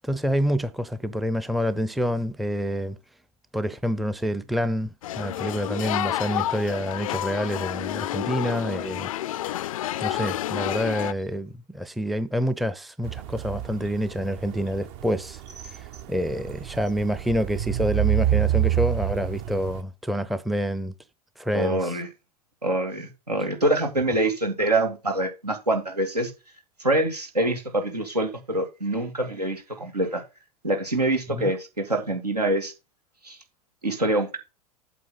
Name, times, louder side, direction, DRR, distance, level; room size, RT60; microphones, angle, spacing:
voice 1, 0.0-3.0 3.5-9.1 9.4-9.6 10.0-15.4 15.7-20.9 21.4-21.9 31.3-31.4, equal, ahead, 0.6 m, -27 dB
sound 1, 5.0-11.1, left 13 dB, 60° left, 0.4 m, -29 dB
sound 2, 13.0-19.8, right 12 dB, 45° right, 0.9 m, -28 dB
voice 2, 21.5-22.1 22.6-26.3 26.8-30.2 30.6-32.7 33.2-33.4 33.8-34.4, right 1 dB, 85° right, 2.4 m, -25 dB
8.5 x 7.1 x 3.9 m
figure-of-eight pair, 90°, 20 cm